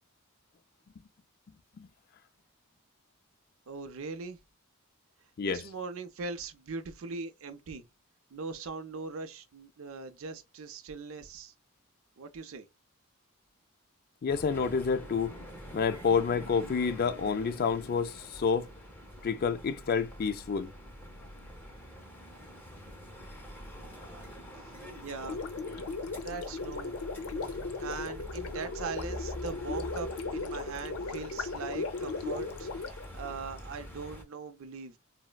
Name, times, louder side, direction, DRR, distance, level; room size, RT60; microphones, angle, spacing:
voice 1, 3.7-4.4 5.4-7.9 8.3-11.5 12.2-12.7 24.7-25.4 26.2-27.0 27.8-35.0, right 4 dB, 65° right, 0.5 m, -40 dB
voice 2, 14.2-15.3 15.7-18.7 19.2-20.7, left 5 dB, 45° left, 0.3 m, -29 dB
sound 1, 14.3-34.2, equal, 10° left, 0.6 m, -46 dB
Gurgling, 25.2-33.6, left 4 dB, 85° left, 0.6 m, -37 dB
4.0 x 2.0 x 2.2 m
head